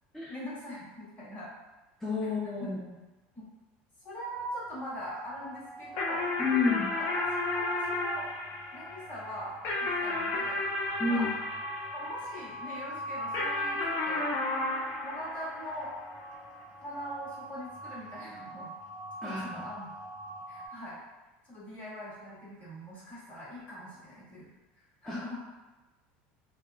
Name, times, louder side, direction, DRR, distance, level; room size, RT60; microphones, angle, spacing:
voice 1, 0.3-1.5 2.2-2.3 2.6-2.7 3.3-3.5 4.0-6.3 6.9-7.2 7.5-8.3 8.7-10.6 11.1-11.3 11.9-14.2 15.0-15.9 16.8-18.7 19.2-20.0 20.5-21.0 21.4-24.5 24.8-25.4, equal, 40° left, -7 dB, 1.4 m, -41 dB
voice 2, 2.0-2.8 6.4-6.9 11.0-11.3 19.2-19.6 25.0-25.2, left 4 dB, 5° left, -8 dB, 0.5 m, -30 dB
sound 1, 4.0-20.7, equal, 25° left, 1.0 m, -44 dB
sound 2, 6.0-12.7 13.3-16.2, left 2 dB, 55° left, 0.5 m, -33 dB
2.8 x 2.2 x 2.3 m, 1.1 s
supercardioid pair, 115°, 5 cm